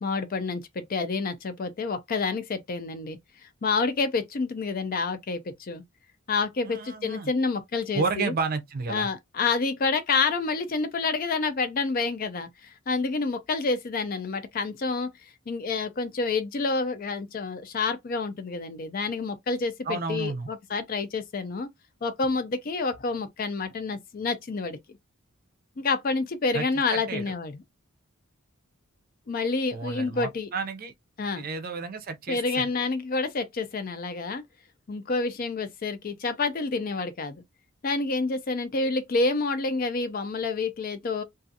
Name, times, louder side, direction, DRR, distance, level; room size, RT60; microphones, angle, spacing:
voice 1, 0.0-3.2 3.6-5.8 6.3-8.3 8.9-21.7 22.0-24.8 25.8-27.6 29.3-30.5 31.2-31.4 32.3-34.4 34.9-37.4 37.8-41.2, left 4 dB, 40° left, 0.4 m, -28 dB
voice 2, 6.6-7.3 7.9-9.1 19.9-20.5 26.5-26.6 26.9-27.3 29.7-30.9 31.4-32.7, right 4 dB, 45° right, 0.5 m, -31 dB
2.4 x 2.4 x 2.6 m
head